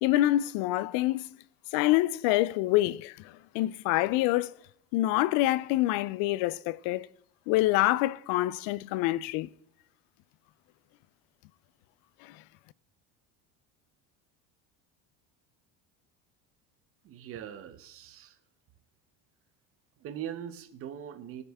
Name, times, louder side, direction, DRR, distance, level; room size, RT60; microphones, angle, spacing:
voice 1, 0.0-1.3 1.7-4.5 4.9-7.1 7.5-9.5 12.2-12.3, left 16 dB, 65° left, 0.5 m, -26 dB
voice 2, 17.0-18.4 20.0-21.4, right 10 dB, 40° right, 0.9 m, -41 dB
18.5 x 6.7 x 3.5 m
cardioid pair, 160°, 37 cm